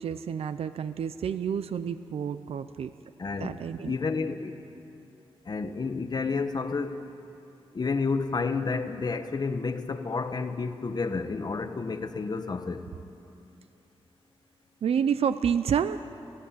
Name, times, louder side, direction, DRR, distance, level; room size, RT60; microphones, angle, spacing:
voice 1, 0.0-2.9 3.4-4.0 14.8-16.0, right 7 dB, 85° right, 12 dB, 0.6 m, -29 dB
voice 2, 3.2-3.5 3.8-4.6 5.5-7.0 7.7-12.9, left 4 dB, 45° left, 8 dB, 1.3 m, -30 dB
29.5 x 15.5 x 8.4 m, 2.8 s
wide cardioid pair, 105°, 10 cm